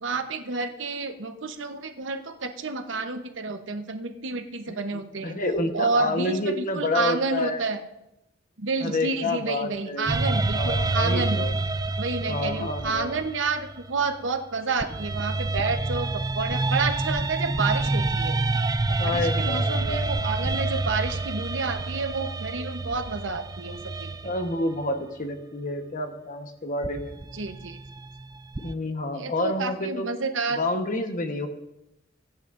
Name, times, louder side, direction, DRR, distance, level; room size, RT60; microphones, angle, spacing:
voice 1, 0.0-5.4 5.7-7.8 8.6-11.5 12.0-18.4 18.9-24.3 27.3-27.8 29.1-30.6, right 4 dB, 85° right, 7 dB, 1.0 m, -30 dB
voice 2, 5.2-7.6 8.8-10.1 10.5-11.5 12.3-13.2 19.0-20.0 24.2-27.1 28.6-30.1 30.5-31.5, left 2 dB, 45° left, 6 dB, 1.2 m, -29 dB
sound 1, 10.1-14.3 14.8-24.8 26.8-28.7, right 2 dB, 20° right, 0.3 m, -28 dB
20.5 x 9.7 x 2.6 m, 0.88 s
head